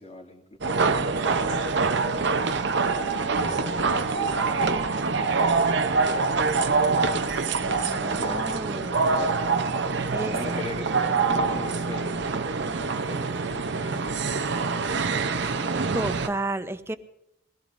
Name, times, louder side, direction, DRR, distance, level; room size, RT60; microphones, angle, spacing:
voice 1, 0.0-2.4 3.1-7.1 7.8-9.4 10.2-12.3 12.6-14.1, left 2 dB, 35° left, -1 dB, 2.5 m, -41 dB
sound 1, 0.6-16.3, right 4 dB, 60° right, 0.7 m, -25 dB
voice 2, 7.6-9.2 10.1-10.6 15.9-17.0, right 2 dB, 15° right, 10 dB, 0.7 m, -33 dB
22.0 x 16.5 x 2.6 m, 0.83 s
head